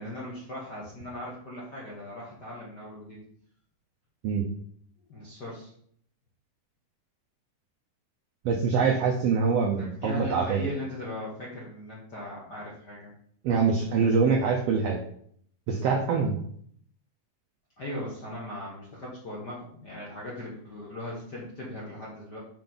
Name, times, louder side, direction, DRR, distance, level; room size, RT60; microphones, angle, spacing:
voice 1, 0.0-3.2 5.1-5.7 9.7-13.1 17.8-22.4, left 1 dB, 55° left, -5 dB, 1.1 m, -38 dB
voice 2, 8.4-10.7 13.4-15.0 15.7-16.4, right 5 dB, 75° right, 1 dB, 1.4 m, -24 dB
7.4 x 4.8 x 3.9 m, 0.64 s
omnidirectional pair, 3.8 m